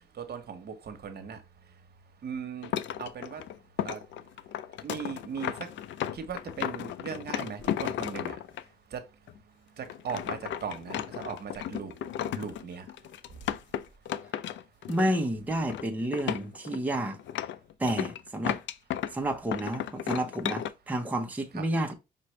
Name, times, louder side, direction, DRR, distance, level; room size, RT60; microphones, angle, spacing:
voice 1, 0.2-1.4 2.2-2.7 3.0-3.4 3.8-4.0 4.8-5.5 6.1-8.4 8.9-9.0 9.8-11.9 12.3-12.8 21.5-21.6, right 7 dB, 55° right, 1.1 m, -38 dB
sound 1, 2.6-8.6 9.3-9.4 9.8-15.3 15.5-15.8 16.1-19.2 19.5-20.7, left 11 dB, 70° left, 0.4 m, -34 dB
voice 2, 14.9-17.2 17.8-18.6 19.1-21.9, right 1 dB, 10° right, 0.8 m, -30 dB
5.6 x 2.5 x 3.2 m
cardioid pair, 90°, 20 cm